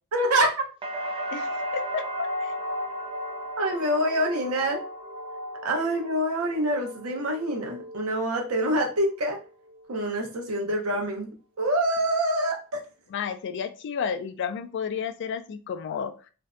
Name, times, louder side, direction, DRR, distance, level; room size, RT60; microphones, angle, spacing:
voice 1, 0.1-0.6 3.6-4.8 5.6-9.4 9.9-11.3 11.6-12.6, right 1 dB, 85° right, 2 dB, 0.7 m, -26 dB
sound 1, 0.8-8.7 9.1-9.8, equal, 25° right, 0.4 m, -35 dB
voice 2, 1.3-2.5 13.1-16.1, left 7 dB, 55° left, 9 dB, 0.3 m, -32 dB
2.5 x 2.1 x 2.4 m, 0.35 s
head